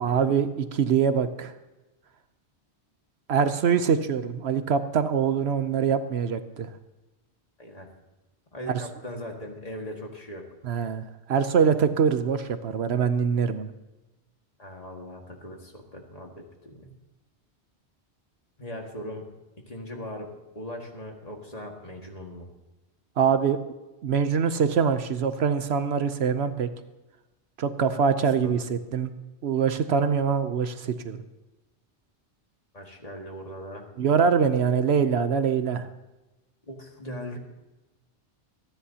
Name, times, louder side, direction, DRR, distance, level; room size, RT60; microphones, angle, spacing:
voice 1, 0.0-1.5 3.3-6.7 8.7-8.8 10.6-13.7 23.2-23.6 24.0-26.7 27.6-29.1 29.4-31.2 34.0-35.9, right 6 dB, 70° right, 10 dB, 1.0 m, -24 dB
voice 2, 8.5-10.4 14.6-16.9 18.6-19.2 19.7-20.3 20.6-22.5 28.4-28.6 32.7-33.9 36.7-37.4, equal, 35° left, 1 dB, 2.0 m, -39 dB
26.5 x 10.0 x 2.8 m, 1.1 s
omnidirectional pair, 1.1 m